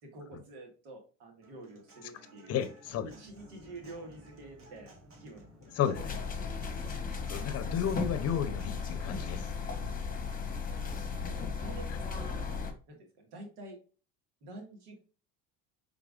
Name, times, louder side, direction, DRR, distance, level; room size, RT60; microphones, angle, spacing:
voice 1, 0.0-2.5 3.0-5.4 5.9-6.0 6.3-6.5 9.7-9.8 10.7-10.9 11.2-11.9 12.1-12.4 12.9-13.8 14.4-15.0, right 2 dB, 90° right, 1.8 m, -48 dB
Human voice / Acoustic guitar, 1.4-9.4, right 1 dB, 40° right, 1.8 m, -58 dB
voice 2, 2.5-3.1 5.8-6.1 7.3-9.5, left 9 dB, 45° left, 0.7 m, -32 dB
sound 1, 2.8-8.3, equal, ahead, 1.2 m, -58 dB
sound 2, 5.9-12.7, left 5 dB, 25° left, 1.1 m, -36 dB
4.7 x 3.7 x 2.4 m
supercardioid pair, 95°, 33 cm